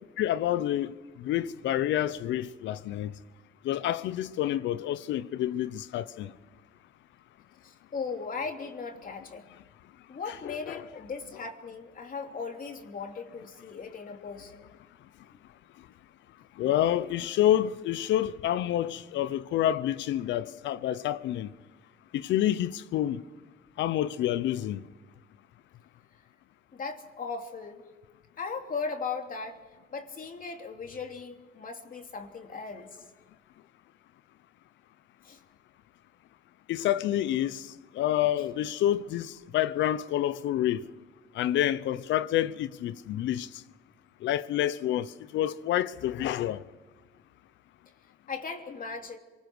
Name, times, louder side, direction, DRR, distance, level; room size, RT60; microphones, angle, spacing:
voice 1, 0.2-3.1 3.6-6.3 10.4-10.8 16.6-21.5 22.1-23.2 23.8-24.8 36.7-37.7 37.9-40.8 41.3-43.5 44.2-46.6, left 12 dB, 80° left, 0.9 m, -28 dB
voice 2, 7.6-9.5 10.1-14.7 26.7-27.8 28.4-29.6 29.9-33.0 35.2-35.4 48.3-49.2, left 5 dB, 50° left, 3.1 m, -38 dB
27.0 x 19.5 x 6.2 m
cardioid pair, 75°, 19 cm